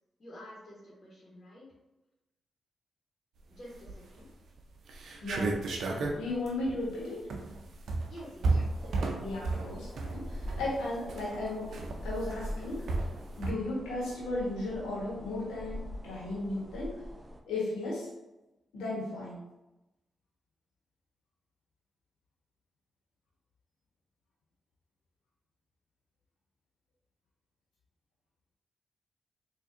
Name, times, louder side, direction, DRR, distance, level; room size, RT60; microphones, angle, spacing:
voice 1, 0.2-1.6 3.5-4.3 8.1-9.4, equal, 50° left, -6 dB, 1.5 m, -50 dB
sound 1, 3.7-4.2 4.6-4.7 4.9-13.5, right 3 dB, 70° right, 0.5 m, -33 dB
voice 2, 5.2-5.6 6.2-7.2 9.2-12.9 13.4-17.0 17.5-18.1 18.7-19.4, left 2 dB, 80° left, -6 dB, 1.4 m, -35 dB
sound 2, 8.5-17.4, left 1 dB, 15° right, 0.7 m, -44 dB
4.0 x 2.8 x 2.6 m, 0.99 s
supercardioid pair, 45°, 0 cm